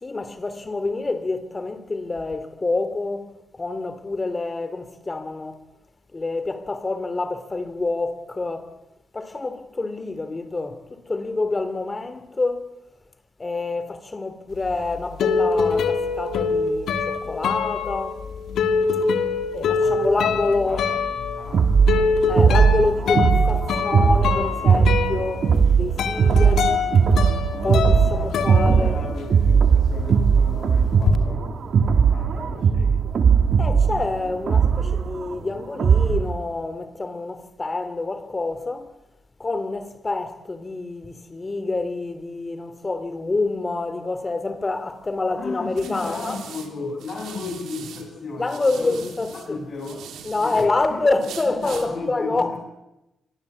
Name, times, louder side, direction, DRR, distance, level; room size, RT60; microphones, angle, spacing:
voice 1, 0.0-3.3 3.6-5.6 6.1-8.7 9.1-12.7 13.4-18.2 19.5-20.8 22.3-26.9 27.6-28.9 33.6-38.9 39.4-46.4 48.4-49.6 50.2-52.6, left 3 dB, 30° left, 2.9 m, -27 dB
sound 1, 14.6-29.4 29.7-31.2, left 5 dB, 80° left, 2.6 m, -24 dB
voice 2, 20.6-21.0 21.3-22.1 28.1-31.5 31.9-33.1 45.4-49.1 49.5-50.1 50.4-50.7 51.6-52.6, left 4 dB, 55° left, 7.6 m, -35 dB
sound 2, 21.5-36.3, right 6 dB, 60° right, 2.1 m, -19 dB
sound 3, 44.8-48.1 48.4-50.7 51.1-51.9, right 8 dB, 85° right, 3.5 m, -41 dB
25.5 x 21.0 x 8.5 m
cardioid pair, 70°, 0 cm